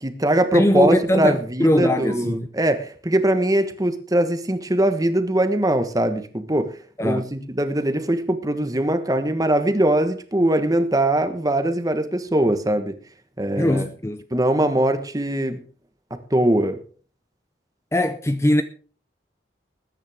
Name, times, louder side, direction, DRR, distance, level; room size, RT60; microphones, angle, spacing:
voice 1, 0.0-6.7 7.0-12.9 13.4-13.8 14.3-15.6 16.3-16.8, right 1 dB, 20° right, 1.3 m, -21 dB
voice 2, 0.5-2.5 7.0-7.3 13.6-14.2 17.9-18.6, left 1 dB, 15° left, 0.6 m, -21 dB
20.5 x 9.9 x 3.6 m
head